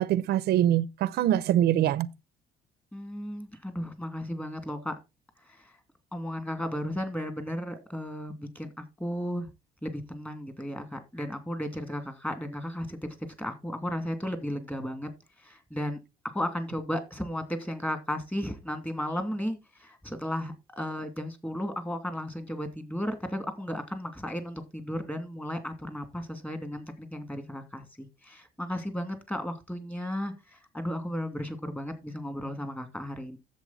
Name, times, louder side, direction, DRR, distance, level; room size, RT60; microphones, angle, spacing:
voice 1, 0.0-2.1, right 12 dB, 70° right, 0.7 m, -24 dB
voice 2, 2.9-5.0 5.4-5.7 6.1-9.5 9.8-13.1 13.4-15.1 15.4-16.0 16.2-33.4, equal, 10° left, 2.6 m, -34 dB
10.5 x 7.8 x 4.1 m
cardioid pair, 110°, 17 cm